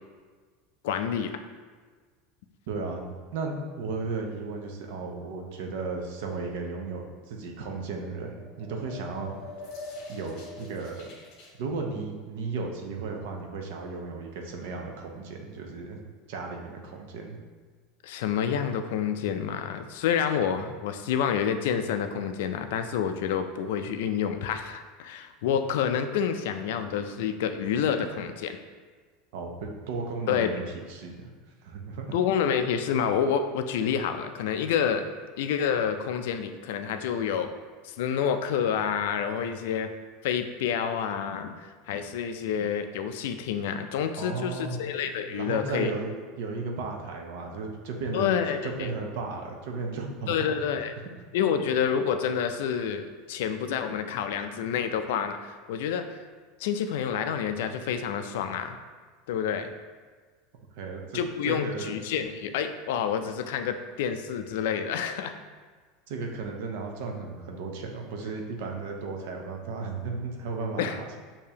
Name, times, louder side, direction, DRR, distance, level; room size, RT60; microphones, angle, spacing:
voice 1, 0.8-1.4 18.0-28.6 30.3-30.5 32.1-35.0 35.4-37.5 37.8-39.9 40.2-45.9 48.1-48.9 50.3-50.9 51.3-56.2 56.6-58.8 59.3-59.7 61.1-65.3 70.8-71.0, left 8 dB, 70° left, 8 dB, 0.3 m, -28 dB
voice 2, 2.7-3.1 3.3-9.4 10.1-11.0 11.6-16.0 16.3-17.4 29.3-31.3 31.6-32.2 44.2-44.8 45.3-46.1 46.4-48.3 48.6-50.5 60.8-62.0 66.1-71.2, right 4 dB, 60° right, 2 dB, 0.6 m, -35 dB
sound 1, 8.3-11.5, left 2 dB, 40° left, 0.9 m, -43 dB
6.6 x 2.7 x 2.8 m, 1.5 s
supercardioid pair, 180°, 0 cm